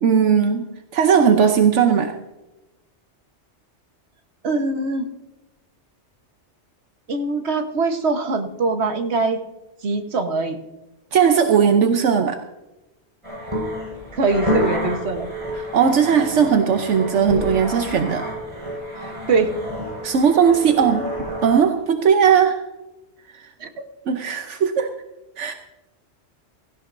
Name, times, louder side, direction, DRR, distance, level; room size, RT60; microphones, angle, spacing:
voice 1, 0.0-0.7 0.9-2.2 11.1-12.4 15.5-18.2 20.0-21.1 21.4-22.6 23.4-23.5 24.1-24.9 25.4-25.5, right 7 dB, 80° right, 5 dB, 1.2 m, -17 dB
voice 2, 4.4-5.1 7.1-9.4 9.8-10.6 14.1-15.3 19.3-19.5 23.6-23.7, right 3 dB, 65° right, 6 dB, 1.5 m, -22 dB
sound 1, 13.2-21.7, left 1 dB, 25° right, 5.5 m, -29 dB
17.0 x 16.5 x 2.6 m, 1.0 s
omnidirectional pair, 1.2 m